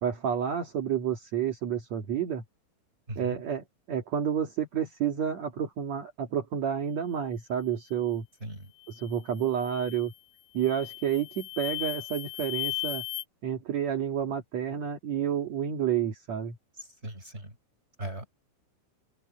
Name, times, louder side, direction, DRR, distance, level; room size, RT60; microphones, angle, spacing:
voice 1, 0.0-2.4 3.2-8.3 8.9-10.1 10.5-13.0 13.4-16.6, right 9 dB, 50° right, 2.3 m, -30 dB
sound 1, 8.8-9.1 9.6-10.1 10.6-13.2, left 20 dB, 85° left, 3.7 m, -36 dB
voice 2, 17.0-17.5 18.0-18.3, right 1 dB, 10° right, 6.9 m, -38 dB
open air
omnidirectional pair, 5.7 m